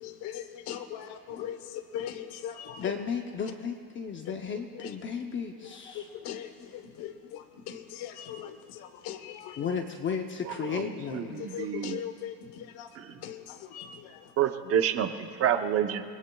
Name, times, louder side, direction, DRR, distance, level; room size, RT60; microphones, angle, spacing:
voice 1, 0.0-2.9 4.3-4.4 4.7-4.9 5.6-9.7 11.4-12.9 13.2-14.3, left 10 dB, 65° left, 9 dB, 1.1 m, -40 dB
voice 2, 2.8-6.1 6.6-6.7 9.6-11.7, left 6 dB, 30° left, 5 dB, 0.7 m, -34 dB
voice 3, 10.7-12.0 14.4-15.1 15.4-16.0, right 9 dB, 35° right, 7 dB, 0.8 m, -28 dB
27.5 x 21.0 x 2.3 m, 2.2 s
cardioid pair, 155°, 42 cm